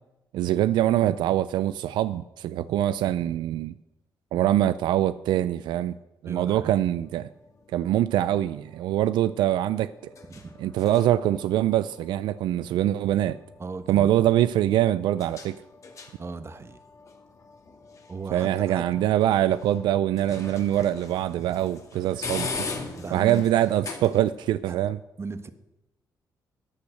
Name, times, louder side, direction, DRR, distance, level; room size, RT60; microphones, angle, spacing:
voice 1, 0.3-3.7 4.3-5.9 6.2-7.3 7.7-9.9 10.6-13.4 13.9-15.6 18.3-22.5 23.1-25.0, right 12 dB, 85° right, 0.4 m, -24 dB
voice 2, 6.2-6.8 10.3-10.5 13.6-14.1 16.2-16.8 18.1-18.9 23.0-23.4 24.7-24.8 25.2-25.5, right 4 dB, 35° right, 1.2 m, -36 dB
sound 1, 7.0-24.5, left 4 dB, 45° left, 2.3 m, -42 dB
14.5 x 8.5 x 6.5 m
cardioid pair, 75°, 8 cm